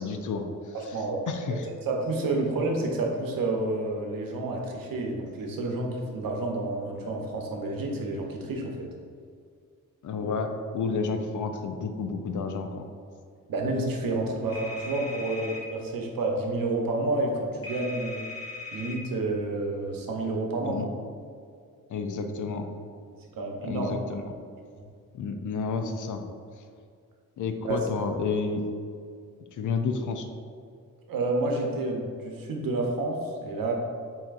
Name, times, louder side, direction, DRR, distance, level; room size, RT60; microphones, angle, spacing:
voice 1, 0.0-1.0 1.3-1.7 10.0-12.9 20.6-20.9 21.9-22.7 23.7-24.2 25.1-26.2 27.4-28.6 29.5-30.3, left 4 dB, 60° left, 6 dB, 0.5 m, -30 dB
voice 2, 0.9-1.3 1.9-8.9 13.5-18.2 18.7-20.8 23.4-23.9 24.8-24.9 27.6-27.8 31.1-33.7, right 2 dB, 75° right, 1 dB, 0.8 m, -29 dB
sound 1, 14.5-15.6 17.6-19.0, left 3 dB, 45° left, 1.3 m, -39 dB
7.2 x 2.8 x 2.5 m, 2.2 s
cardioid pair, 85°, 35 cm